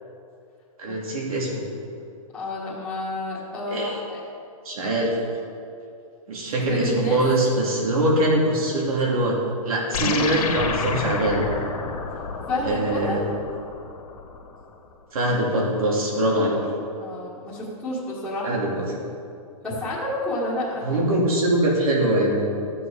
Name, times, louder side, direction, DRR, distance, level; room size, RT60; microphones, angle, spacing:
voice 1, 0.8-1.6 3.7-4.0 4.6-5.1 6.3-9.4 9.6-11.5 12.6-13.2 15.1-16.6 18.4-18.8 20.8-22.5, right 1 dB, 70° right, -3 dB, 2.9 m, -23 dB
voice 2, 2.3-4.2 6.7-7.2 12.5-13.2 17.0-18.6 19.6-21.1, left 1 dB, ahead, -14 dB, 1.8 m, -29 dB
sound 1, 9.9-14.6, left 5 dB, 75° left, 1.8 m, -29 dB
12.5 x 7.7 x 5.0 m, 2.5 s
hypercardioid pair, 170°, 19 cm